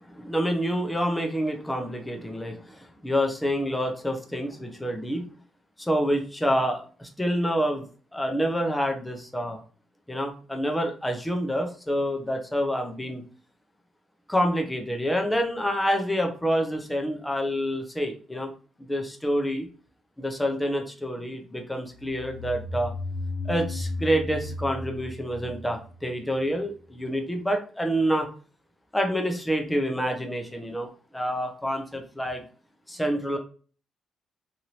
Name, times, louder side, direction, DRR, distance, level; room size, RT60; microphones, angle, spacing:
voice 1, 0.2-5.3 5.8-7.8 8.1-9.6 10.1-13.2 14.3-18.5 18.9-19.7 20.2-22.9 23.4-28.3 28.9-30.9 31.1-32.4 32.9-33.4, equal, 10° left, 3 dB, 0.6 m, -27 dB
sound 1, 22.0-26.6, left 2 dB, 55° left, 1.1 m, -34 dB
2.9 x 2.6 x 2.8 m, 0.40 s
cardioid pair, 90°, 0 cm